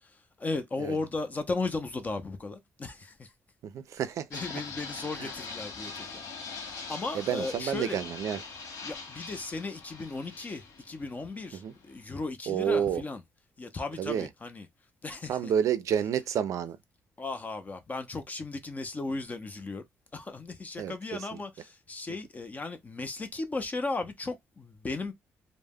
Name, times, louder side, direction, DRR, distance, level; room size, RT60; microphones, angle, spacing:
voice 1, 0.4-3.3 4.3-6.2 6.6-8.0 8.8-13.2 13.6-14.7 15.0-15.5 17.2-19.8 20.1-25.1, left 3 dB, 30° left, 0.4 m, -36 dB
voice 2, 3.6-4.4 5.2-5.3 7.1-8.4 11.5-11.7 12.5-13.0 14.0-14.3 15.3-16.8 20.8-21.4, right 8 dB, 70° right, 0.4 m, -30 dB
Fixed-wing aircraft airplane, 4.3-12.2, left 4 dB, 80° left, 0.7 m, -42 dB
2.2 x 2.0 x 3.4 m
cardioid pair, 100°, 6 cm